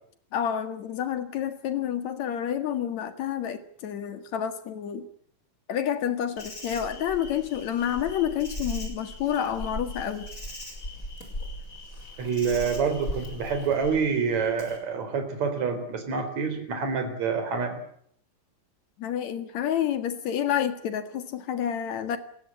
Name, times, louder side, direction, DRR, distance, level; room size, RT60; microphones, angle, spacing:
voice 1, 0.3-5.1 5.7-10.3 19.0-22.2, left 9 dB, 55° left, 9 dB, 2.8 m, -29 dB
Insect, 6.4-14.8, equal, 20° left, 5.9 m, -39 dB
voice 2, 12.2-17.8, right 5 dB, 50° right, 7 dB, 5.1 m, -27 dB
29.5 x 16.5 x 8.6 m, 0.66 s
omnidirectional pair, 4.1 m